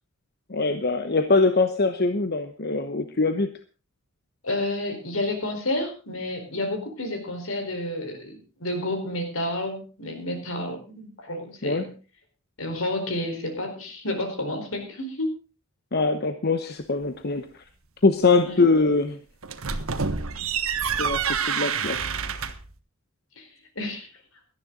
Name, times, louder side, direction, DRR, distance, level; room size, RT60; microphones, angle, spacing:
voice 1, 0.5-3.5 11.6-11.9 15.9-17.6 18.0-19.2 21.0-22.0, left 3 dB, 50° left, 8 dB, 1.0 m, -23 dB
voice 2, 4.4-11.9 12.6-15.3 18.4-18.7 23.4-23.5 23.8-24.1, left 1 dB, 75° left, 5 dB, 4.5 m, -30 dB
sound 1, 19.4-22.7, right 6 dB, 80° right, 1.4 m, -27 dB
18.0 x 13.0 x 3.9 m, 0.35 s
head